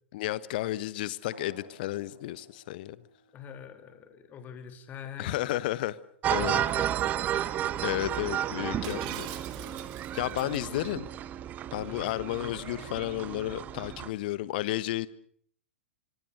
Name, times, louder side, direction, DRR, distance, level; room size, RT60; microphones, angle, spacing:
voice 1, 0.1-3.0 5.2-5.9 6.3-6.6 7.8-9.3 10.1-11.1 11.7-15.1, left 15 dB, 45° left, 1.2 m, -32 dB
sound 1, 1.3-6.4, right 1 dB, 90° left, 6.7 m, -57 dB
voice 2, 3.3-5.5 6.3-7.3 8.5-10.9 11.8-12.6, left 7 dB, 25° left, 3.3 m, -46 dB
sound 2, 6.2-14.1, right 11 dB, 25° right, 1.0 m, -32 dB
Shatter, 8.8-10.6, right 14 dB, 40° right, 2.7 m, -43 dB
25.0 x 25.0 x 6.8 m
figure-of-eight pair, 105°, 7 cm